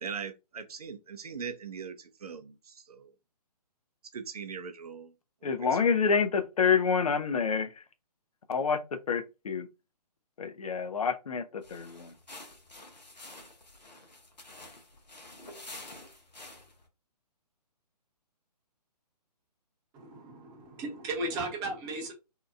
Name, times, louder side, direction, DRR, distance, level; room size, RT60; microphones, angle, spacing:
voice 1, 0.0-3.1 4.1-5.1 5.4-6.0, right 6 dB, 65° right, 0.5 m, -41 dB
voice 2, 5.4-7.7 8.5-8.8 9.1-9.7 10.4-12.1, left 6 dB, 60° left, 0.5 m, -27 dB
sound 1, 11.6-16.9, left 2 dB, 85° left, 0.8 m, -49 dB
voice 3, 19.9-22.1, right 2 dB, 15° right, 0.7 m, -36 dB
2.8 x 2.2 x 2.4 m
figure-of-eight pair, 135°, 21 cm